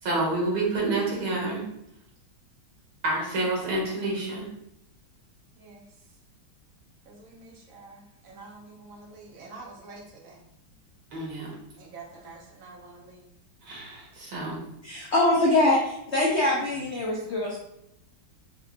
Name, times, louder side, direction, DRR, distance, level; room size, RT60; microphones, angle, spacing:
voice 1, 0.0-1.6 3.0-4.5 11.1-11.5 13.6-14.6, right 2 dB, 85° right, -4 dB, 2.4 m, -28 dB
voice 2, 5.6-5.9 7.0-10.4 11.8-13.3, right 3 dB, 50° right, -1 dB, 1.2 m, -47 dB
voice 3, 14.8-17.6, left 2 dB, 80° left, -3 dB, 0.6 m, -23 dB
5.6 x 3.2 x 2.4 m, 0.80 s
omnidirectional pair, 2.2 m